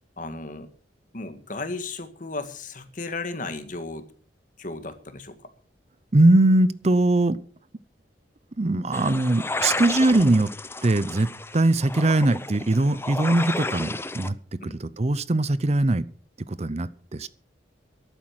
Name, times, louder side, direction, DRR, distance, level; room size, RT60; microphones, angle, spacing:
voice 1, 0.2-0.7 1.1-4.1 4.6-5.5 14.6-14.8, left 3 dB, 50° left, 9 dB, 1.9 m, -35 dB
voice 2, 6.1-7.4 8.6-10.5 10.8-16.1 16.4-17.3, right 2 dB, 40° right, 16 dB, 0.7 m, -21 dB
sound 1, 8.9-14.3, left 2 dB, 15° left, 0.7 m, -32 dB
13.5 x 11.5 x 5.9 m, 0.44 s
head